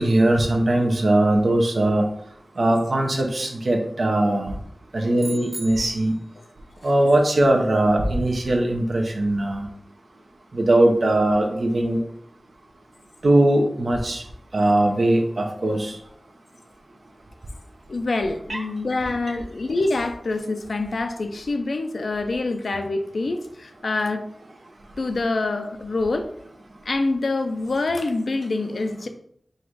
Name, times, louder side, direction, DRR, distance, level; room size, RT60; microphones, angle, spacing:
voice 1, 0.0-2.0 2.6-4.5 4.9-6.1 6.8-9.7 10.5-12.0 13.2-14.2 14.5-15.9 18.5-18.6, right 1 dB, 70° right, 2 dB, 0.8 m, -20 dB
sound 1, 5.2-6.3, right 1 dB, 25° right, 0.8 m, -38 dB
voice 2, 17.9-24.2 25.0-26.3 26.9-29.1, left 2 dB, 80° left, 7 dB, 0.4 m, -25 dB
3.9 x 2.5 x 4.6 m, 0.69 s
cardioid pair, 45°, 0 cm